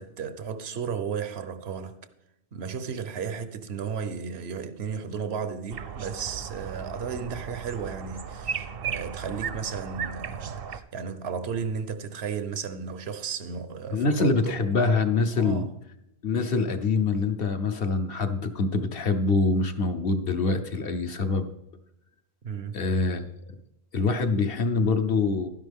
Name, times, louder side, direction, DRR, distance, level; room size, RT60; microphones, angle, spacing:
voice 1, 0.0-2.0 2.5-14.6 15.3-15.7 22.4-22.8, right 6 dB, 85° right, 1.1 m, -34 dB
sound 1, 5.7-10.8, right 7 dB, 65° right, 0.9 m, -36 dB
voice 2, 13.9-15.6 16.2-21.5 22.7-23.3 23.9-25.5, left 3 dB, 65° left, 1.2 m, -25 dB
12.0 x 10.5 x 3.6 m
omnidirectional pair, 1.1 m